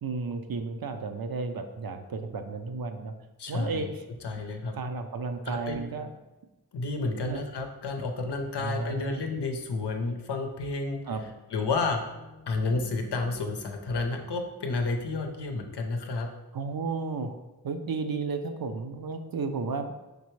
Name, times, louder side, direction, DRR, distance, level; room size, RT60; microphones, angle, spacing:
voice 1, 0.0-3.1 3.5-4.0 4.7-6.1 7.2-7.4 8.6-9.2 11.1-11.2 16.5-17.4 17.6-19.9, right 4 dB, 60° right, 7 dB, 0.5 m, -33 dB
voice 2, 3.4-3.9 4.2-4.7 5.5-5.8 6.7-11.0 11.5-12.0 12.5-16.3, left 3 dB, 90° left, 4 dB, 0.6 m, -31 dB
sound 1, 8.3-15.7, left 4 dB, 40° left, 0.6 m, -53 dB
5.2 x 3.3 x 3.1 m, 1.0 s
wide cardioid pair, 50°, 40 cm